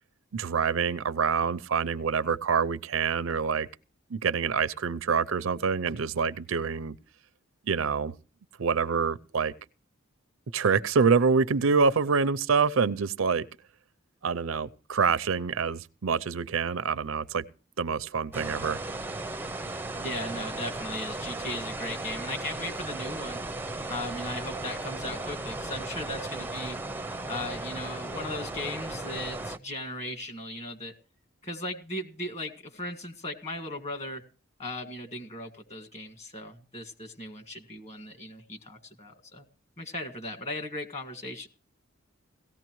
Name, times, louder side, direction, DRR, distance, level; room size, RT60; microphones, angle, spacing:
voice 1, 0.3-3.7 4.1-6.9 7.7-8.1 8.6-9.5 10.5-13.4 14.2-17.4 17.8-18.8, right 5 dB, 75° right, 0.5 m, -26 dB
sound 1, 18.3-29.6, right 2 dB, 10° right, 0.5 m, -36 dB
voice 2, 20.0-23.4 23.9-26.8 27.3-30.9 31.4-34.2 34.6-39.4 39.8-41.5, left 1 dB, 30° left, 1.8 m, -37 dB
17.5 x 14.5 x 3.1 m
head